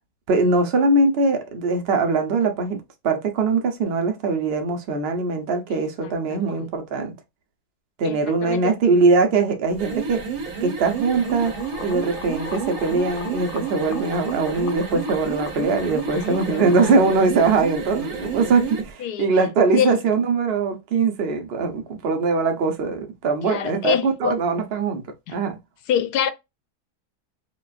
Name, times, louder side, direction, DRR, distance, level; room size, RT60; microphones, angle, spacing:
voice 1, 0.3-2.8 3.0-7.1 8.0-10.2 10.6-11.5 11.8-25.0 25.3-25.6, right 4 dB, 45° right, 0.9 m, -21 dB
voice 2, 5.7-6.7 8.0-8.7 16.1-17.1 19.0-19.3 19.7-20.0 23.4-24.4 25.3-25.4 25.9-26.3, left 9 dB, 80° left, 1.2 m, -27 dB
sound 1, 9.7-18.9, right 5 dB, 65° right, 1.5 m, -31 dB
sound 2, 10.8-16.9, left 6 dB, 55° left, 0.6 m, -40 dB
5.0 x 2.5 x 2.4 m
omnidirectional pair, 1.7 m